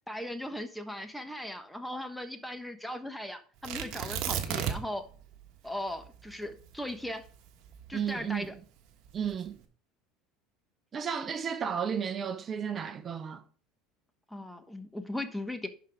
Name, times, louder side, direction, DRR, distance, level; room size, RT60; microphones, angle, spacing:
voice 1, 0.1-5.1 5.6-7.2 7.9-8.5 14.3-15.7, left 1 dB, 5° left, 1.2 m, -38 dB
Tearing, 3.6-5.0 5.3-5.4 6.0-8.3 9.0-9.5, right 9 dB, 60° right, 1.4 m, -34 dB
voice 2, 7.9-8.5 9.1-9.5 10.9-13.4, right 7 dB, 35° right, 0.8 m, -33 dB
11.0 x 4.8 x 3.6 m
hypercardioid pair, 80°, 0 cm